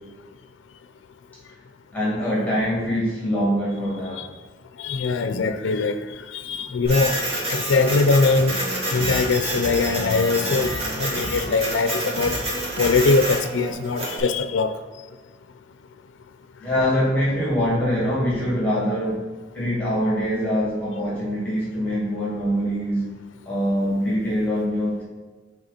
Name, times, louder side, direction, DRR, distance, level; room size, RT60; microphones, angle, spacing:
voice 1, 1.9-4.3 16.6-19.3 19.5-23.1 23.5-25.0, equal, 10° left, -7 dB, 2.0 m, -23 dB
voice 2, 4.8-7.2 7.5-8.6 8.9-12.3 12.8-14.7, left 3 dB, 85° left, 9 dB, 0.4 m, -22 dB
Printer, 6.8-14.2, right 1 dB, 30° right, 1.5 m, -28 dB
sound 1, 8.3-13.7, right 1 dB, 90° right, 0.9 m, -34 dB
8.0 x 3.3 x 4.2 m, 1.3 s
head